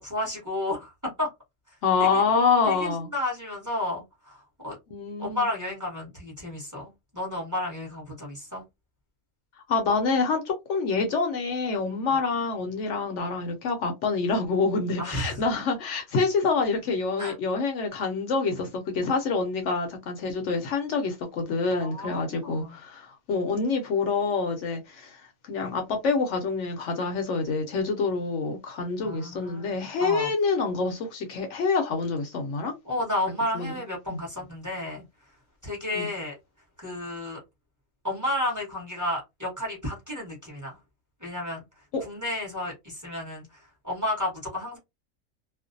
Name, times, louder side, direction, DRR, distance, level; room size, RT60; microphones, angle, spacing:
voice 1, 0.0-1.3 2.0-2.2 2.6-4.8 5.2-8.6 15.0-15.4 17.2-17.3 21.7-22.8 29.0-29.7 30.0-30.3 32.8-35.0 35.6-36.3 36.8-37.4 38.0-40.8 41.2-41.6 42.0-44.8, left 1 dB, 15° right, 0.9 m, -32 dB
voice 2, 1.8-3.1 4.9-5.5 9.7-32.7 33.5-33.7 34.1-34.2 35.9-36.1 41.9-42.0, left 4 dB, 70° left, 0.8 m, -26 dB
2.4 x 2.1 x 2.5 m
omnidirectional pair, 1.4 m